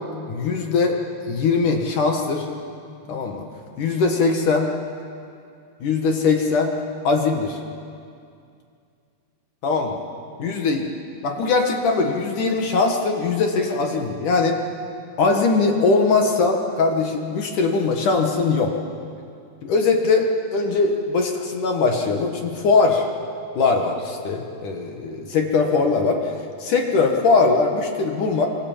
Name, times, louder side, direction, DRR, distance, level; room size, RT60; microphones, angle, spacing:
voice 1, 0.3-1.0 1.3-2.5 2.9-3.4 3.8-4.7 5.8-7.6 9.6-10.0 10.4-10.9 11.2-14.6 15.2-18.7 19.6-23.1 23.6-26.3 26.6-28.5, left 4 dB, 55° left, 2 dB, 2.8 m, -21 dB
26.0 x 24.5 x 7.3 m, 2.4 s
omnidirectional pair, 4.8 m